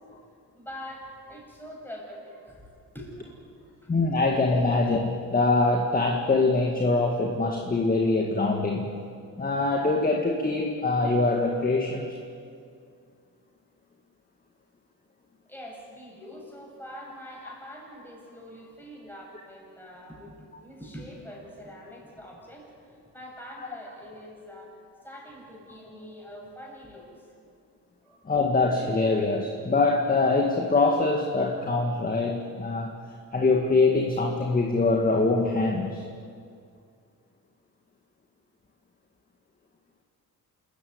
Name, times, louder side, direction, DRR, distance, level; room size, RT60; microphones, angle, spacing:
voice 1, 0.5-3.9 4.7-4.8 15.5-27.3 28.0-28.3, equal, 5° left, -2 dB, 7.5 m, -44 dB
voice 2, 3.9-8.9 9.4-12.2 28.3-32.9 33.3-36.0, left 3 dB, 25° left, 2 dB, 2.0 m, -24 dB
27.5 x 14.5 x 9.6 m, 2.3 s
cardioid pair, 125°, 36 cm